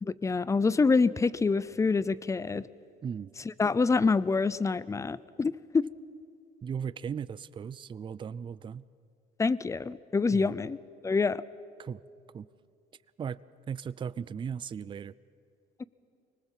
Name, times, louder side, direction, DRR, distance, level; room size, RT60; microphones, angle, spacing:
voice 1, 0.0-2.6 3.6-5.9 9.4-10.8 11.0-11.4, left 4 dB, 20° left, 19 dB, 0.5 m, -26 dB
voice 2, 6.6-8.8 10.3-10.5 11.8-12.0 12.3-12.5 13.2-13.4 13.7-15.1, right 7 dB, 30° right, 18 dB, 0.4 m, -37 dB
25.0 x 19.5 x 7.4 m, 2.4 s
cardioid pair, 110°, 17 cm